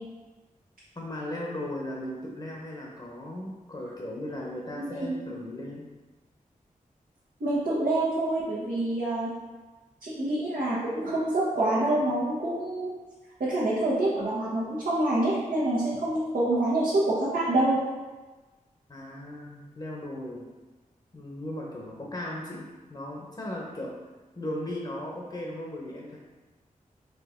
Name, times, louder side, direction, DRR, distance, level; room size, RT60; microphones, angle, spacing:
voice 1, 1.0-5.9 18.9-20.5 21.1-23.9 24.4-26.2, left 1 dB, 35° left, -2 dB, 0.9 m, -37 dB
voice 2, 4.9-5.2 5.4-5.6 7.4-9.3 10.0-12.9 13.4-17.8, right 1 dB, 75° right, -9 dB, 1.2 m, -26 dB
5.0 x 2.8 x 3.6 m, 1.2 s
cardioid pair, 50°, 14 cm